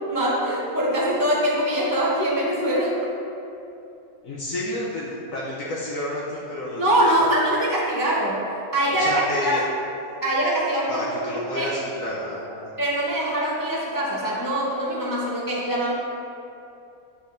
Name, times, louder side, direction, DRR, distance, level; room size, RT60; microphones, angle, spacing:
voice 1, 0.1-3.0 6.8-8.5 8.7-9.1 9.4-9.7 10.2-11.7 12.8-15.9, right 1 dB, 25° left, -6 dB, 0.5 m, -23 dB
voice 2, 4.2-7.3 8.9-9.6 10.9-12.7, left 1 dB, 65° left, -5 dB, 1.0 m, -30 dB
8.3 x 5.1 x 2.6 m, 2.8 s
omnidirectional pair, 1.7 m